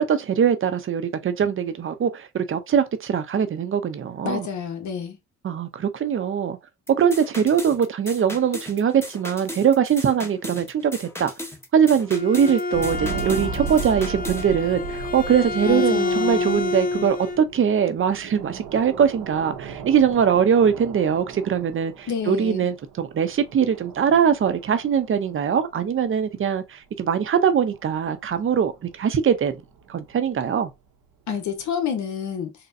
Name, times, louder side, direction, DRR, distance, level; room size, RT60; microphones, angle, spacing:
voice 1, 0.0-4.5 5.4-6.6 7.0-11.3 11.7-29.5 29.9-30.7, right 7 dB, 45° right, 0.6 m, -22 dB
voice 2, 4.2-5.2 15.6-16.6 17.0-17.1 22.1-22.7 31.3-32.5, left 7 dB, 70° left, 1.0 m, -29 dB
sound 1, 6.9-14.5, left 1 dB, 10° left, 0.8 m, -37 dB
Bowed string instrument, 11.9-17.4, left 3 dB, 30° left, 0.4 m, -28 dB
sound 2, 12.7-25.6 27.2-30.3 31.5-31.6, right 6 dB, 80° right, 0.9 m, -37 dB
4.1 x 2.1 x 2.6 m
cardioid pair, 90°, 30 cm